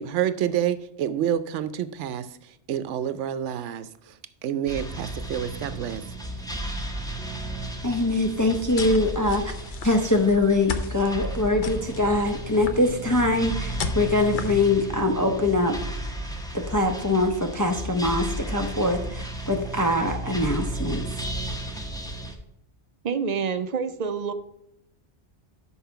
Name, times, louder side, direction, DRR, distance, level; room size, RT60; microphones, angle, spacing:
voice 1, 0.0-2.3 2.7-4.1 4.4-6.0, right 10 dB, 85° right, 13 dB, 0.9 m, -28 dB
sound 1, 4.7-22.3, right 2 dB, 5° left, 0.8 m, -34 dB
voice 2, 7.8-9.5 9.8-15.8 16.5-21.0, left 2 dB, 25° left, 4 dB, 0.4 m, -23 dB
sound 2, 8.5-14.7, left 4 dB, 50° left, 0.8 m, -36 dB
voice 3, 23.0-24.3, right 6 dB, 50° right, 10 dB, 0.5 m, -27 dB
6.2 x 5.6 x 5.7 m, 0.82 s
omnidirectional pair, 1.2 m